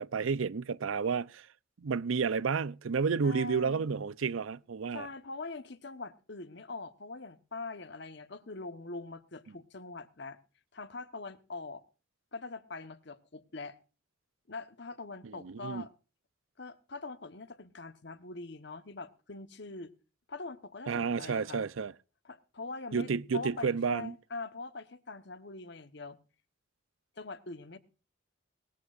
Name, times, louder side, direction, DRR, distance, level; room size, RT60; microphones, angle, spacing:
voice 1, 0.0-1.5 1.8-5.1 15.2-15.8 20.9-21.9 22.9-24.1, right 5 dB, 85° right, 0.5 m, -31 dB
voice 2, 3.2-3.9 4.9-10.4 10.7-11.8 12.3-13.8 14.5-15.9 16.6-19.9 20.3-21.7 22.2-26.2 27.2-27.8, left 3 dB, 60° left, 1.1 m, -43 dB
19.5 x 14.0 x 2.5 m
head